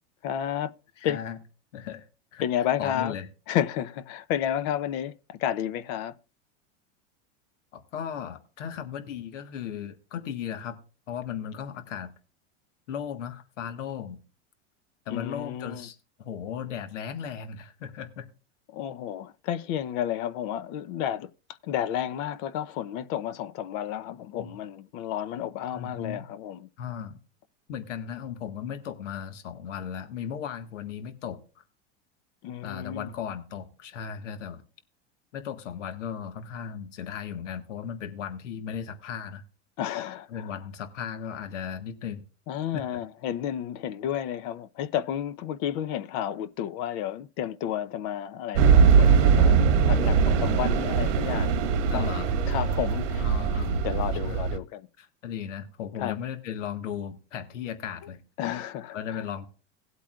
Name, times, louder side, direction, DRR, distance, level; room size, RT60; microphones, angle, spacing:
voice 1, 0.2-0.7 1.0-1.2 2.4-3.1 3.5-6.1 15.1-15.9 18.7-21.3 21.6-26.7 32.4-33.1 39.8-40.5 42.5-51.6 51.9-52.1 52.5-53.3 53.8-54.9 56.0-56.2 58.0-58.1 58.4-59.2, left 10 dB, 60° left, 0.9 m, -31 dB
voice 2, 1.0-1.4 1.7-2.1 2.3-2.4 2.8-3.3 7.7-10.8 11.1-12.1 12.9-14.2 15.0-18.3 24.4-24.6 25.7-26.2 26.8-27.2 27.7-31.4 32.6-34.6 35.3-39.4 40.3-42.2 42.7-43.0 51.9-52.3 53.2-53.8 54.2-54.5 55.0-58.2 58.9-59.5, left 8 dB, 85° left, 1.6 m, -36 dB
sound 1, 48.6-54.6, right 6 dB, 85° right, 1.4 m, -21 dB
18.0 x 8.3 x 2.5 m
hypercardioid pair, 110°, 36 cm